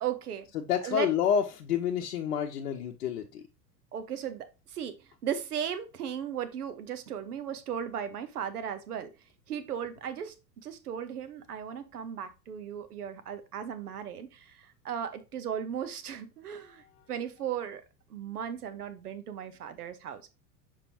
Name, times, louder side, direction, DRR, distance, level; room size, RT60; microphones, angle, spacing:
voice 1, 0.0-0.5 0.8-1.1 3.9-9.1 9.5-17.8 18.1-20.3, right 8 dB, 65° right, 1.2 m, -36 dB
voice 2, 0.5-3.4, left 8 dB, 65° left, 0.8 m, -29 dB
6.9 x 5.2 x 2.8 m
figure-of-eight pair, 85°, 48 cm